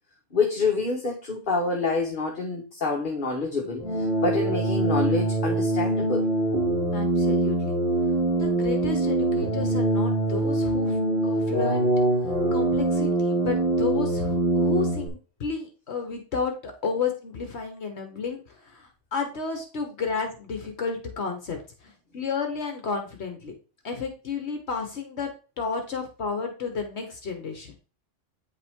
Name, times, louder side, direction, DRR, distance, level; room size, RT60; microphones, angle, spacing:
voice 1, 0.3-6.3, left 4 dB, 45° left, 0 dB, 1.5 m, -27 dB
sound 1, 3.8-15.1, right 2 dB, 30° right, 3.4 m, -24 dB
voice 2, 6.9-7.7 8.4-11.9 12.5-23.5 23.8-27.7, left 5 dB, 65° left, 5 dB, 1.3 m, -32 dB
9.0 x 5.6 x 3.6 m, 0.36 s
omnidirectional pair, 1.2 m